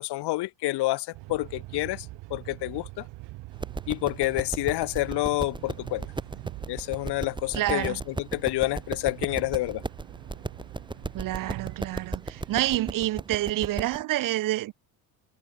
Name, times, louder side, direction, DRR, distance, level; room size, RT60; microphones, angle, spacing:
voice 1, 0.0-2.1 2.3-3.1 3.9-6.1 6.7-9.8, left 18 dB, 65° left, 1.8 m, -28 dB
sound 1, 1.1-13.1, right 20 dB, 70° right, 3.9 m, -44 dB
sound 2, 3.5-14.0, right 3 dB, 10° right, 3.0 m, -36 dB
voice 2, 7.5-8.0 11.1-14.7, right 15 dB, 50° right, 0.8 m, -28 dB
cardioid pair, 135°, 44 cm